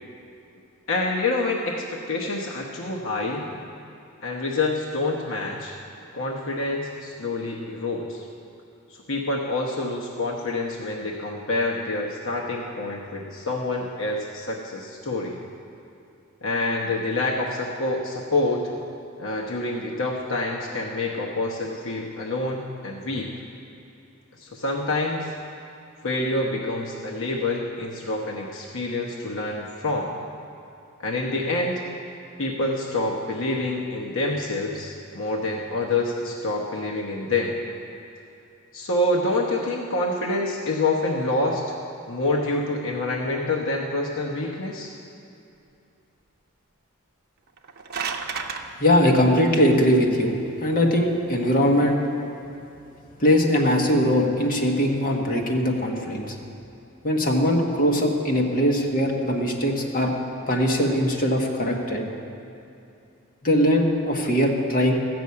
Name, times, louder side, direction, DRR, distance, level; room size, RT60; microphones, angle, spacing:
voice 1, 0.9-3.5 4.2-5.8 6.1-8.2 9.1-15.4 16.4-18.7 19.2-23.3 24.4-25.3 26.0-30.2 31.0-31.8 32.4-37.6 38.7-41.8 42.1-44.9, left 2 dB, 65° left, -1 dB, 1.0 m, -27 dB
sound 1, 47.5-48.6, right 5 dB, 50° right, 0.7 m, -31 dB
voice 2, 48.8-52.0 53.2-56.3 57.0-60.1 60.5-62.0 63.4-64.9, equal, 40° left, 0 dB, 1.4 m, -21 dB
14.5 x 6.2 x 8.4 m, 2.7 s
head